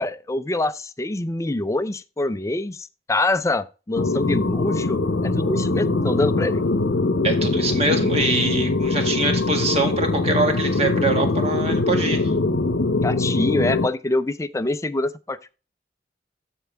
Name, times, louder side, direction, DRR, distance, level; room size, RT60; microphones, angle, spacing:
voice 1, 0.0-6.6 13.0-15.5, left 2 dB, 15° left, 0.5 m, -25 dB
sound 1, 4.0-13.9, left 3 dB, 80° left, 0.8 m, -22 dB
voice 2, 7.2-12.3, right 2 dB, 35° right, 1.8 m, -24 dB
13.0 x 4.6 x 3.4 m
head